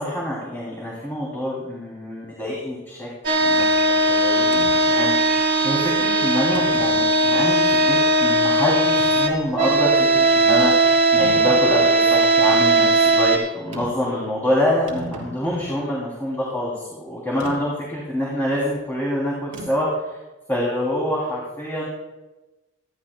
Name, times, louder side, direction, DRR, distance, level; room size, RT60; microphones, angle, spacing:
voice 1, 0.0-3.1 3.4-20.1 20.5-21.9, left 1 dB, 10° left, -6 dB, 3.1 m, -26 dB
sound 1, 3.2-13.4, right 2 dB, 45° right, 2.1 m, -18 dB
sound 2, 4.5-4.8 5.7-5.8 6.5-7.1 7.7-7.8 11.2-11.6 13.7-14.1 14.4-14.5 14.7-15.8 17.4-17.6 19.5-19.9, right 2 dB, 70° right, 3.3 m, -36 dB
26.0 x 11.5 x 2.3 m, 1.1 s
head